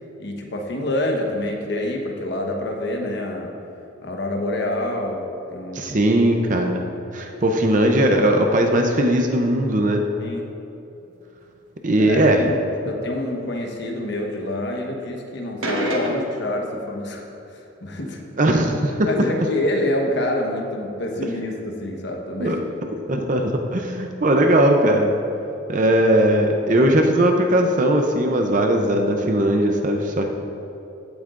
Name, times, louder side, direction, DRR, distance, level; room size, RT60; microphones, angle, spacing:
voice 1, 0.2-3.5 4.0-6.0 10.2-10.5 12.0-18.2 19.0-22.6, left 1 dB, 55° left, 1 dB, 1.1 m, -27 dB
voice 2, 5.7-6.9 7.1-10.1 11.8-12.5 18.4-19.3 22.4-22.6 23.1-25.1 25.7-30.3, right 1 dB, 35° right, 3 dB, 0.6 m, -19 dB
sound 1, 15.6-16.6, right 1 dB, 70° right, 1.3 m, -26 dB
15.5 x 8.1 x 2.5 m, 3.0 s
head